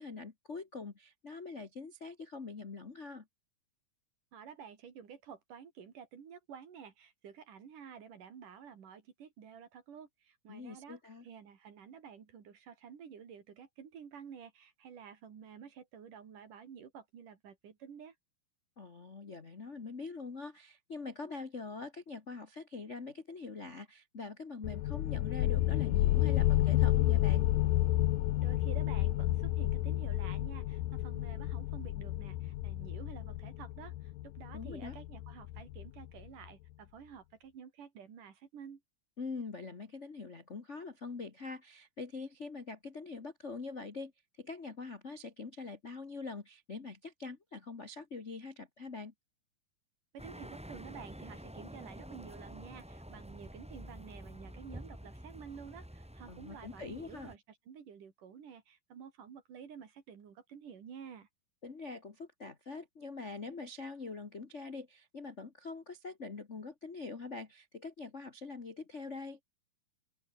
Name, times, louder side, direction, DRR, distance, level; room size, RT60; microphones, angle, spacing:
voice 1, 0.0-3.2 10.5-11.2 18.8-27.4 34.5-35.0 39.2-44.1 44.4-49.1 56.3-57.3 61.6-69.4, left 4 dB, 55° left, 0.7 m, -44 dB
voice 2, 4.3-18.1 28.4-38.8 50.1-61.3, right 7 dB, 65° right, 4.3 m, -51 dB
sound 1, 24.6-36.0, left 15 dB, 75° left, 2.6 m, -31 dB
sound 2, 50.2-57.4, equal, ahead, 1.7 m, -49 dB
open air
omnidirectional pair, 4.2 m